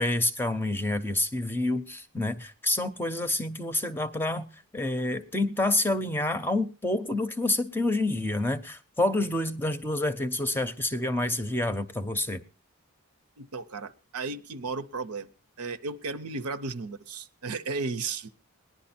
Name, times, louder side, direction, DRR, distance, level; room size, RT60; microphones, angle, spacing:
voice 1, 0.0-4.5 4.7-12.4, left 2 dB, 10° left, 0.6 m, -28 dB
voice 2, 13.4-15.3 15.6-18.3, right 4 dB, 80° right, 0.8 m, -34 dB
18.5 x 10.5 x 4.3 m
head